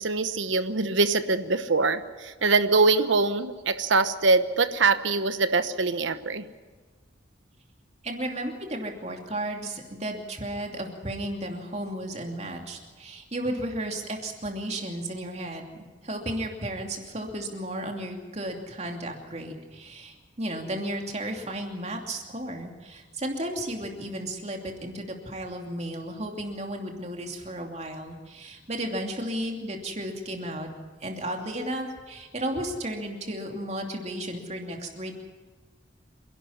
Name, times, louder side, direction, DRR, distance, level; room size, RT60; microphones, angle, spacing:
voice 1, 0.0-6.4, right 3 dB, 70° right, 11 dB, 1.1 m, -23 dB
voice 2, 8.0-30.7 31.0-35.1, right 1 dB, 35° right, 2 dB, 2.8 m, -34 dB
27.0 x 11.5 x 10.0 m, 1.4 s
head